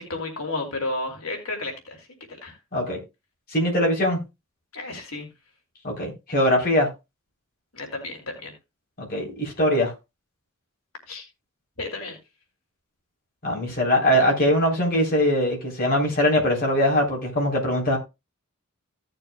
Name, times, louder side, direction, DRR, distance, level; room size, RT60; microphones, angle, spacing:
voice 1, 0.0-2.1 2.4-2.6 4.7-5.3 7.7-8.5 11.1-11.2 11.8-12.2, left 2 dB, 90° left, 2.8 m, -32 dB
voice 2, 3.5-4.2 5.8-6.9 9.0-9.9 13.4-18.0, equal, 45° left, 3.7 m, -22 dB
16.0 x 6.8 x 2.3 m
head